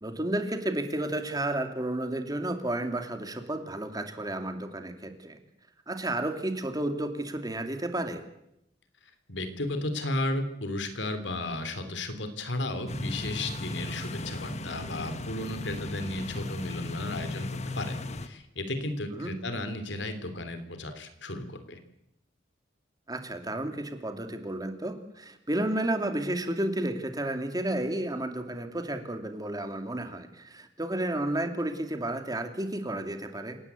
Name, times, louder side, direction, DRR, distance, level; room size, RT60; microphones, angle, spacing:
voice 1, 0.0-5.4 5.9-8.2 19.1-19.4 23.1-33.6, right 1 dB, 20° right, 7 dB, 2.6 m, -32 dB
voice 2, 9.3-17.5 17.8-18.0 18.2-21.8, left 1 dB, 80° left, 9 dB, 3.3 m, -34 dB
sound 1, 12.9-18.3, left 2 dB, 40° left, 1.5 m, -36 dB
27.5 x 18.0 x 8.4 m, 0.82 s
head